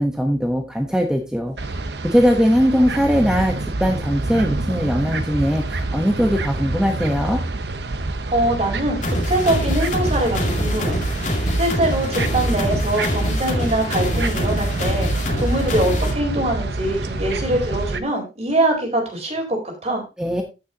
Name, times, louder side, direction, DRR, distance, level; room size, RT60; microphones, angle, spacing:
voice 1, 0.0-1.5 2.0-3.5 3.8-7.4 20.2-20.4, equal, 5° right, 2 dB, 1.1 m, -20 dB
sound 1, 1.6-18.0, right 2 dB, 70° right, 0.9 m, -27 dB
voice 2, 8.3-11.0 11.6-20.0, right 1 dB, 40° right, 3 dB, 4.0 m, -23 dB
sound 2, 9.0-16.1, equal, 45° left, 2.3 m, -24 dB
14.5 x 6.6 x 2.9 m, 0.28 s
head